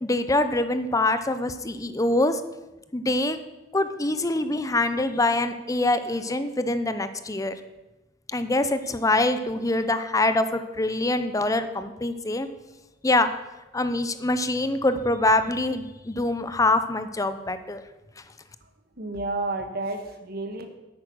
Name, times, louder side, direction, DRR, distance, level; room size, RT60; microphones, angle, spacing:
voice 1, 0.0-2.4 2.9-3.4 3.7-7.5 8.3-12.5 13.0-13.3 13.7-17.8, left 2 dB, 20° left, 11 dB, 0.7 m, -24 dB
voice 2, 19.0-20.7, right 2 dB, 55° right, 6 dB, 1.4 m, -31 dB
9.5 x 8.7 x 6.2 m, 1.1 s
head